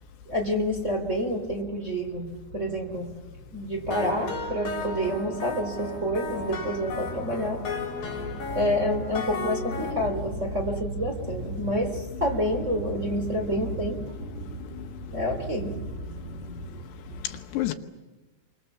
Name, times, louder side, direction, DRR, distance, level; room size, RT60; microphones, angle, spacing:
voice 1, 0.3-3.2 3.5-7.9 8.2-17.2, equal, 20° right, 3.5 m, -29 dB
sound 1, 3.9-9.9, left 4 dB, 55° left, 6.3 m, -34 dB
voice 2, 14.3-15.0 16.7-16.8 17.2-17.7, left 14 dB, 80° left, 3.3 m, -33 dB
29.5 x 25.0 x 7.1 m
omnidirectional pair, 5.0 m